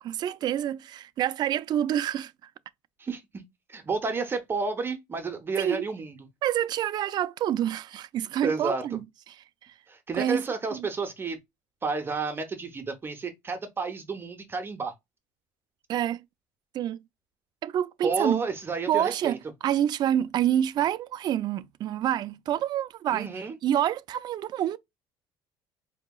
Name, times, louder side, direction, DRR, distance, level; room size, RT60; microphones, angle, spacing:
voice 1, 0.0-2.3 5.6-5.9 6.4-9.7 10.1-10.5 10.7-10.9 15.9-16.2 16.7-17.0 17.6-18.4 18.9-24.8, right 11 dB, 45° right, 0.4 m, -27 dB
voice 2, 3.7-6.2 8.4-8.8 9.9-11.4 11.8-14.9 18.0-19.4 23.1-23.5, right 4 dB, 20° right, 0.8 m, -31 dB
4.7 x 2.7 x 2.2 m
cardioid pair, 140°, 10 cm